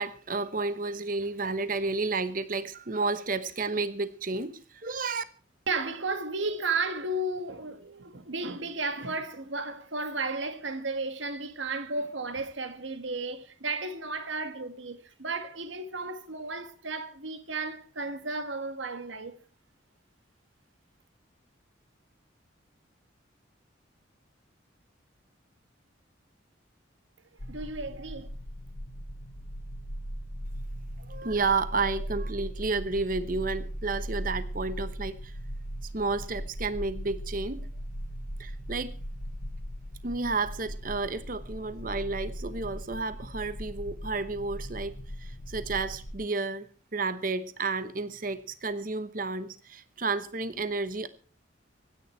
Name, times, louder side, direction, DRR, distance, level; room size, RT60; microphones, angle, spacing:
voice 1, 0.0-5.2 31.0-35.3 35.8-37.7 38.4-38.9 40.0-46.7 46.9-51.1, right 3 dB, 45° right, 1.0 m, -31 dB
voice 2, 5.7-19.3 27.5-28.3, right 3 dB, 75° right, 1.7 m, -33 dB
sound 1, 27.4-46.1, equal, 50° left, 1.7 m, -38 dB
25.0 x 9.7 x 4.5 m
head